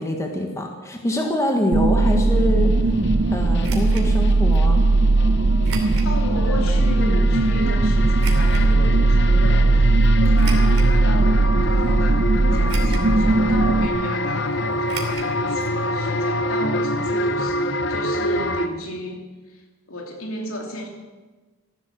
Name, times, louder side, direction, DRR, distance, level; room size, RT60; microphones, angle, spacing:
voice 1, 0.0-2.9 3.3-4.8, equal, 15° left, 2 dB, 1.4 m, -25 dB
sound 1, 1.7-13.9, right 2 dB, 40° right, 0.6 m, -18 dB
sound 2, 2.0-18.7, left 1 dB, 50° left, 0.8 m, -27 dB
sound 3, 3.6-4.1 5.6-6.1 6.7-6.8 8.2-8.6 10.3-10.9 11.6-11.7 12.7-13.2 13.4-13.5 14.9-15.3 15.6-15.7 16.0-16.1, right 5 dB, 85° right, 2.9 m, -35 dB
voice 2, 6.0-19.2 19.5-19.6 19.9-20.9, equal, 75° left, 2 dB, 2.8 m, -33 dB
15.5 x 11.5 x 7.6 m, 1.3 s
head